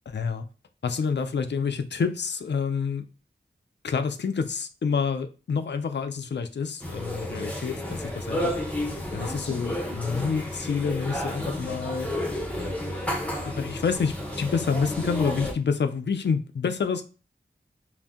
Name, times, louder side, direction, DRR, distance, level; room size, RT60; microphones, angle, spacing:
voice 1, 0.1-0.5 0.8-3.1 3.8-8.5 9.1-12.6 13.5-17.0, left 5 dB, 55° left, 0.4 m, -28 dB
sound 1, 6.8-15.5, left 1 dB, 5° left, 0.8 m, -31 dB
2.6 x 2.0 x 3.5 m
wide cardioid pair, 55°, 21 cm